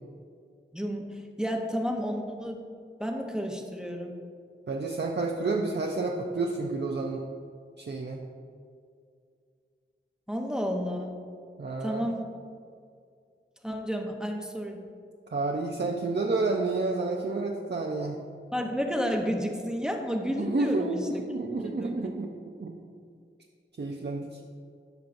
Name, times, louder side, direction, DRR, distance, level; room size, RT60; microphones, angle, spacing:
voice 1, 0.7-2.6 3.0-4.1 10.3-11.2 11.8-12.2 13.6-14.8 18.5-21.0 21.6-22.1, equal, 5° right, 2 dB, 0.9 m, -31 dB
voice 2, 4.7-7.2 7.8-8.2 11.6-12.1 15.3-18.2 20.3-22.3 22.6-22.8 23.8-24.3, right 3 dB, 55° right, 0 dB, 0.6 m, -30 dB
13.5 x 5.5 x 2.6 m, 2.3 s
wide cardioid pair, 55°, 21 cm